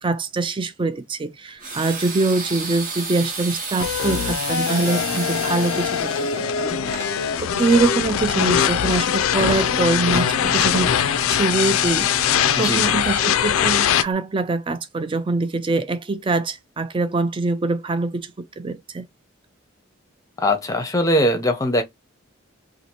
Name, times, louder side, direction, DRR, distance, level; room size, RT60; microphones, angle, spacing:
voice 1, 0.0-6.8 7.4-10.9 11.3-19.1, right 3 dB, 25° right, 0.3 m, -24 dB
sound 1, 1.6-7.1, right 4 dB, 40° right, 0.8 m, -31 dB
sound 2, 3.8-14.0, left 9 dB, 75° left, 0.4 m, -21 dB
Bowed string instrument, 9.1-13.4, right 2 dB, 75° right, 0.5 m, -35 dB
voice 2, 20.4-21.8, left 1 dB, 15° left, 0.7 m, -20 dB
2.8 x 2.5 x 4.3 m
head